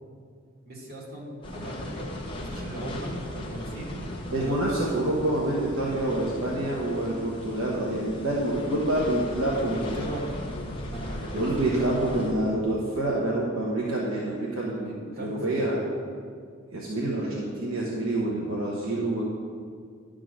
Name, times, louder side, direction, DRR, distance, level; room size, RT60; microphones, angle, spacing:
voice 1, 0.6-2.1 2.4-4.0 4.3-4.7 9.5-10.3 10.8-11.9 14.8-15.8, right 1 dB, 45° right, -5 dB, 2.3 m, -38 dB
sound 1, 1.4-12.3, left 1 dB, 25° left, 1.1 m, -37 dB
voice 2, 4.3-10.0 11.3-15.8 16.7-19.3, right 1 dB, 70° right, -5 dB, 1.2 m, -27 dB
11.0 x 3.8 x 6.3 m, 2.2 s
head